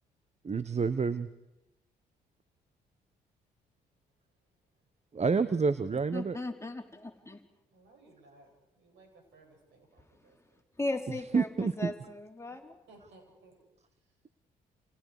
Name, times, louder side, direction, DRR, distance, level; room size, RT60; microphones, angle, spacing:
voice 1, 0.4-1.3 5.1-6.4 11.3-11.9, right 5 dB, 35° right, 14 dB, 1.1 m, -28 dB
voice 2, 6.1-7.4 10.8-12.8, left 2 dB, 15° left, 3 dB, 3.5 m, -37 dB
voice 3, 7.7-10.6 12.5-12.6 12.9-13.7 14.0-14.1, right 2 dB, 70° right, 2 dB, 7.9 m, -60 dB
30.0 x 29.0 x 5.0 m, 0.92 s
hypercardioid pair, 50°, 20 cm